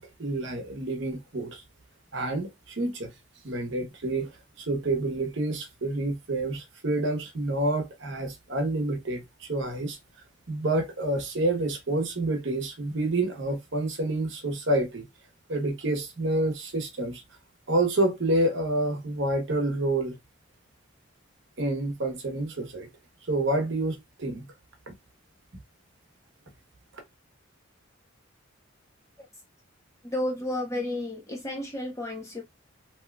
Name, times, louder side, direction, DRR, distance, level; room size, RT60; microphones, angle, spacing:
voice 1, 0.0-1.6 2.1-3.1 3.4-10.0 10.5-15.0 15.5-17.2 17.7-20.2 21.6-22.9 23.3-24.4 24.9-25.0, right 2 dB, 60° right, 0.9 m, -28 dB
voice 2, 30.0-32.4, left 1 dB, 15° left, 0.9 m, -32 dB
3.5 x 2.9 x 2.2 m
head